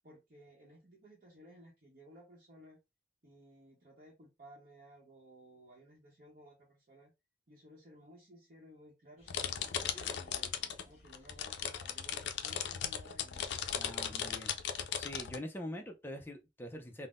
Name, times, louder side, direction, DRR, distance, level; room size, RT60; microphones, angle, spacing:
voice 1, 0.0-2.8 3.2-7.1 7.5-13.7, equal, 45° right, 0.8 m, -58 dB
sound 1, 9.2-14.5, left 1 dB, 35° left, 1.1 m, -60 dB
sound 2, 9.3-10.8 11.1-15.4, left 8 dB, 70° left, 0.4 m, -37 dB
voice 2, 13.8-14.5 14.9-17.1, left 1 dB, 10° left, 0.4 m, -44 dB
3.6 x 2.0 x 2.4 m
head